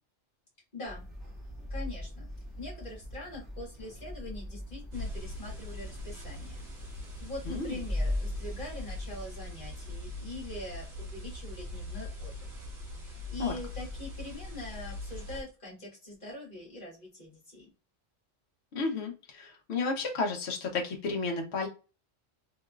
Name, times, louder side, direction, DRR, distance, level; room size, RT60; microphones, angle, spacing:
voice 1, 0.7-1.1 1.7-2.3 2.6-6.6 7.2-12.5 13.3-17.7, left 2 dB, 40° left, 1.9 m, -43 dB
sound 1, 0.9-9.3, left 1 dB, ahead, 1.4 m, -39 dB
sound 2, 4.9-15.4, left 1 dB, 35° right, 1.2 m, -42 dB
voice 2, 7.4-7.8 13.4-13.5 18.7-21.7, left 3 dB, 60° left, 1.1 m, -32 dB
3.5 x 3.0 x 2.3 m
omnidirectional pair, 1.3 m